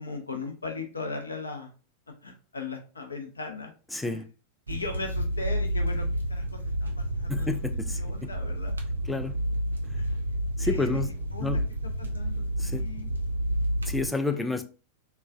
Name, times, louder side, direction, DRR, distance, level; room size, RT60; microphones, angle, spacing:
voice 1, 0.0-1.7 2.2-3.7 4.0-4.2 4.7-6.7 7.0-7.5 8.0-8.7 10.0-10.2 10.6-11.0 11.3-11.6 12.0-13.1, left 3 dB, 75° left, 0.6 m, -38 dB
voice 2, 3.9-4.3 7.3-8.3 9.1-9.4 10.6-11.1 11.4-11.6 12.6-12.8 13.9-14.6, left 3 dB, 5° left, 0.3 m, -30 dB
sound 1, 4.7-14.1, equal, 75° right, 0.4 m, -30 dB
3.1 x 2.2 x 2.3 m
figure-of-eight pair, 90°, 0 cm